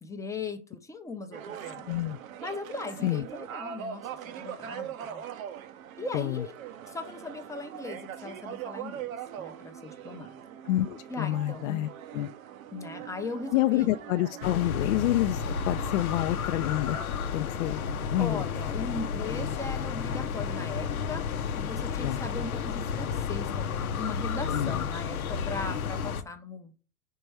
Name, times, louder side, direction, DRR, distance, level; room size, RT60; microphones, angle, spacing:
voice 1, 0.0-1.8 2.4-5.2 6.0-6.5 6.9-10.3 11.1-11.8 12.7-13.9 18.2-21.2 21.6-26.7, left 3 dB, 5° left, 0.6 m, -38 dB
sound 1, 1.3-17.1, right 9 dB, 70° right, 0.8 m, -42 dB
voice 2, 1.8-2.2 3.0-3.3 6.1-6.4 10.6-12.3 13.5-17.0 17.3-17.8 18.1-18.5 22.0-22.2 24.5-24.8, left 15 dB, 60° left, 0.5 m, -28 dB
sound 2, 14.4-26.2, left 6 dB, 90° left, 0.8 m, -32 dB
5.2 x 4.6 x 4.6 m
hypercardioid pair, 115°, 42 cm